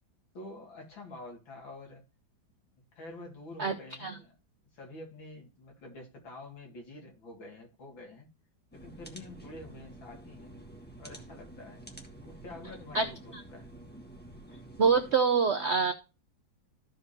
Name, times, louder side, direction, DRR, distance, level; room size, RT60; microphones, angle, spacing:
voice 1, 0.3-2.0 2.9-4.4 4.7-8.3 8.7-10.5 11.0-11.8 12.2-13.7, left 2 dB, 80° left, 3.0 m, -47 dB
sound 1, 8.7-15.1, right 1 dB, 5° left, 1.2 m, -49 dB
voice 2, 14.8-15.9, right 5 dB, 70° right, 0.6 m, -25 dB
14.5 x 5.1 x 2.8 m
omnidirectional pair, 2.1 m